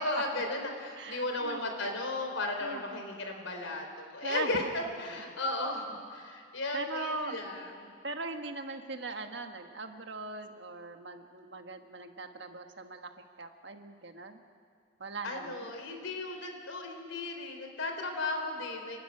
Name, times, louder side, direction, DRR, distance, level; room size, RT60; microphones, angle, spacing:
voice 1, 0.0-7.9 15.2-19.0, left 2 dB, 80° left, 4 dB, 3.8 m, -35 dB
voice 2, 1.0-1.6 2.6-3.0 4.2-4.9 6.7-7.4 8.0-14.4 15.0-15.7, right 2 dB, 60° right, 5 dB, 1.5 m, -40 dB
29.0 x 12.5 x 9.9 m, 2.2 s
head